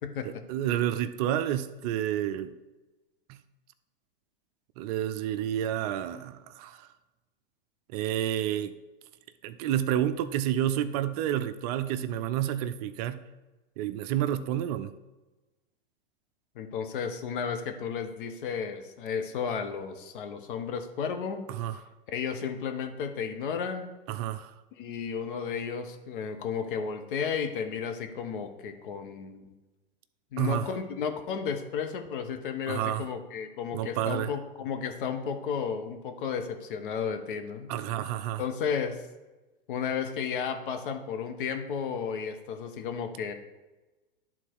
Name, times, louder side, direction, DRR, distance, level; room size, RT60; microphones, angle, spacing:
voice 1, 0.2-2.5 3.3-3.4 4.8-6.9 7.9-8.7 9.4-13.2 13.8-14.9 21.5-21.7 24.1-24.5 30.4-30.7 32.7-33.0 33.7-34.3 37.7-38.4, right 11 dB, 45° right, 12 dB, 0.5 m, -30 dB
voice 2, 16.5-21.4 22.1-23.9 24.8-29.5 30.3-37.7 38.4-39.0 39.7-43.3, left 6 dB, 60° left, 6 dB, 1.1 m, -33 dB
11.5 x 3.9 x 4.6 m, 1.1 s
hypercardioid pair, 110°, 29 cm